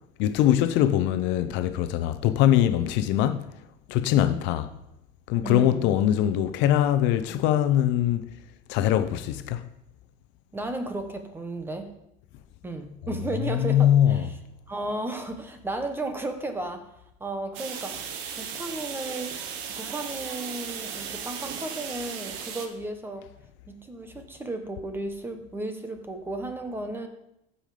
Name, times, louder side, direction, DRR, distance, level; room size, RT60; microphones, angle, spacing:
voice 1, 0.2-3.5 3.9-4.7 5.3-8.3 8.7-9.6 13.5-14.3, left 11 dB, 65° left, 0.8 m, -22 dB
voice 2, 5.4-5.9 10.5-11.9 12.6-14.4 14.7-16.9 17.2-18.0 18.4-19.4 19.8-23.3 23.7-27.1, right 2 dB, 10° right, 1.1 m, -34 dB
sound 1, 17.5-22.7, right 7 dB, 75° right, 1.4 m, -36 dB
14.5 x 5.5 x 5.0 m
cardioid pair, 155°, 20 cm